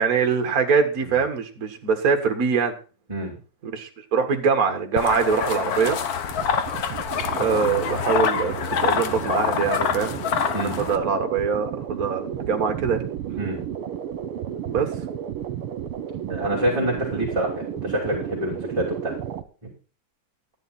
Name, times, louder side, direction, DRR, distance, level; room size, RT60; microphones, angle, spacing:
voice 1, 0.0-2.7 3.6-6.0 7.4-8.5 8.8-10.2 10.5-13.0 14.7-14.9, right 5 dB, 45° right, 5 dB, 1.9 m, -23 dB
sound 1, 5.0-11.0, left 7 dB, 55° left, 1.2 m, -26 dB
sound 2, 6.3-19.4, right 9 dB, 80° right, 1.9 m, -33 dB
voice 2, 16.3-19.1, right 1 dB, 15° right, -6 dB, 3.1 m, -26 dB
13.0 x 10.5 x 4.2 m, 0.35 s
omnidirectional pair, 2.4 m